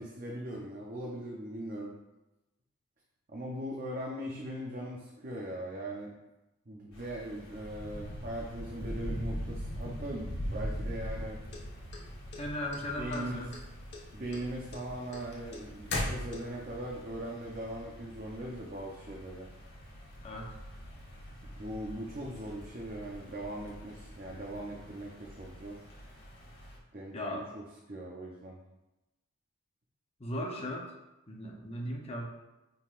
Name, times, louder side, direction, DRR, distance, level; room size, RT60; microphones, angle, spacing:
voice 1, 0.0-2.0 3.3-6.1 6.7-11.4 13.0-13.4 14.1-19.5 21.6-25.8 26.9-27.6 27.9-28.6, right 1 dB, 40° right, -3 dB, 0.7 m, -40 dB
sound 1, 6.9-26.8, equal, 80° left, 2.1 m, -43 dB
sound 2, 11.5-12.8 13.1-13.6 13.9-16.7, left 1 dB, 50° left, 1.2 m, -36 dB
voice 2, 12.4-13.5 20.2-20.5 27.1-27.5 30.2-30.9 31.3-32.3, left 1 dB, 30° left, 0 dB, 0.8 m, -37 dB
9.8 x 3.9 x 2.5 m, 0.97 s
head